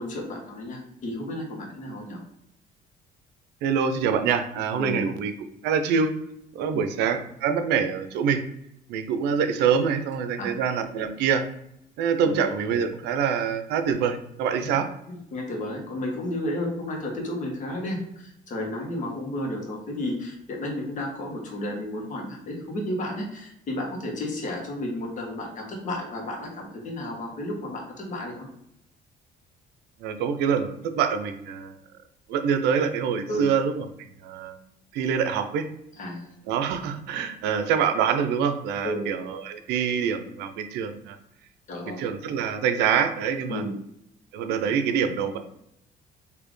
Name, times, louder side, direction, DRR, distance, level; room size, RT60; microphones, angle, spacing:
voice 1, 0.0-2.2 4.8-5.0 6.7-6.9 10.4-10.5 12.2-12.4 15.1-28.5 33.3-33.5 36.0-36.4 38.8-39.1 41.7-42.1 43.5-43.7, left 1 dB, 50° left, -1 dB, 1.3 m, -32 dB
voice 2, 3.6-5.3 5.6-6.2 6.5-8.4 8.9-11.4 12.0-14.9 30.0-31.7 32.3-34.6 34.9-35.7 36.5-41.2 42.0-43.6 44.3-45.4, right 7 dB, 85° right, 8 dB, 0.5 m, -25 dB
4.1 x 2.8 x 3.1 m, 0.76 s
cardioid pair, 110°, 17 cm